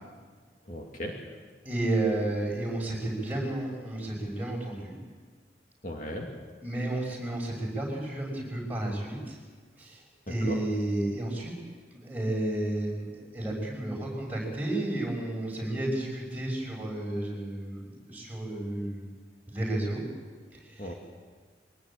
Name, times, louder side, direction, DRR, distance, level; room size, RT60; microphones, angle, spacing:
voice 1, 0.7-1.1 5.8-6.3 10.5-10.6 20.8-20.9, left 1 dB, 45° left, 1 dB, 2.5 m, -36 dB
voice 2, 1.6-4.9 6.6-9.4 9.8-11.5 11.9-19.0 19.5-20.0 20.7-21.0, right 1 dB, 10° right, -2 dB, 6.3 m, -32 dB
23.0 x 19.0 x 8.7 m, 1.5 s
head